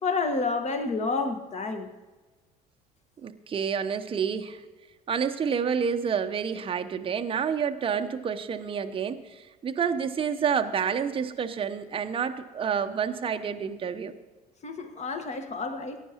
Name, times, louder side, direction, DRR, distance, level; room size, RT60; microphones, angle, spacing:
voice 1, 0.0-1.9 14.6-16.0, left 4 dB, 35° left, 7 dB, 1.4 m, -29 dB
voice 2, 3.2-4.6 5.1-14.1, right 7 dB, 25° right, 7 dB, 0.8 m, -29 dB
20.5 x 10.0 x 2.9 m, 1.2 s
figure-of-eight pair, 60°, 21 cm